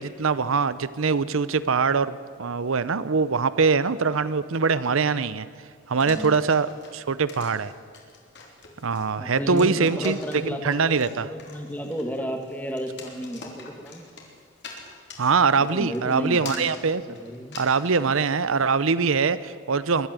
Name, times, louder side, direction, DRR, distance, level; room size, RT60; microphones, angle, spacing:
voice 1, 0.0-5.5 5.9-6.7 6.9-7.7 8.8-11.3 15.2-17.0 17.6-20.1, right 5 dB, 75° right, 16 dB, 0.7 m, -23 dB
sound 1, 6.0-18.0, left 4 dB, 55° left, 3.6 m, -44 dB
voice 2, 9.2-10.8 11.2-14.1 15.6-16.4 17.2-17.6, equal, 10° left, 4 dB, 1.9 m, -32 dB
22.5 x 12.5 x 9.1 m, 2.2 s
head